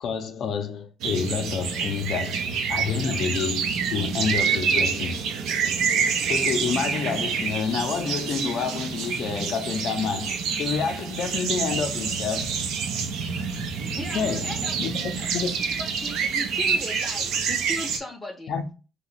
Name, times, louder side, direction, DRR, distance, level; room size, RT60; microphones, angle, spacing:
voice 1, 0.0-5.3 6.3-12.5 14.1-15.6 18.5-18.7, left 6 dB, 65° left, 0.5 m, -29 dB
sound 1, 1.0-18.0, right 6 dB, 85° right, 0.5 m, -27 dB
voice 2, 14.0-15.3 15.8-18.5, left 1 dB, 10° left, 0.5 m, -37 dB
2.8 x 2.2 x 3.9 m
cardioid pair, 125°, 0 cm